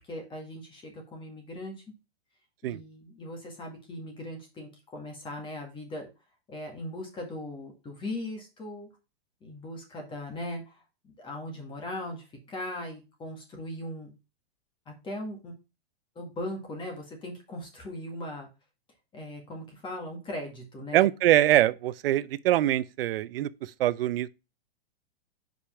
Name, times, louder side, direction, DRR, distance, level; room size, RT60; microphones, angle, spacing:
voice 1, 0.0-1.8 2.6-6.1 6.5-8.9 9.4-10.8 11.2-14.1 14.9-15.6 16.2-18.5 19.1-21.1, left 1 dB, 15° left, 1.8 m, -39 dB
voice 2, 20.9-24.3, right 13 dB, 65° right, 0.7 m, -24 dB
5.3 x 5.0 x 5.7 m
hypercardioid pair, 150°, 31 cm